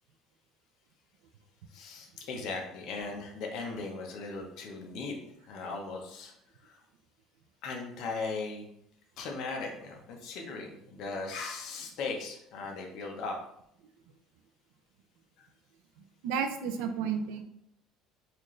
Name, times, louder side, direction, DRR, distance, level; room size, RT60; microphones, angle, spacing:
voice 1, 1.7-5.2 5.4-6.3 6.6-6.8 7.6-8.6 9.2-13.4 15.4-15.5, left 4 dB, 50° left, 2 dB, 0.7 m, -38 dB
voice 2, 16.2-17.4, right 6 dB, 80° right, 8 dB, 0.4 m, -31 dB
4.3 x 2.5 x 3.1 m, 0.75 s
cardioid pair, 170°, 0 cm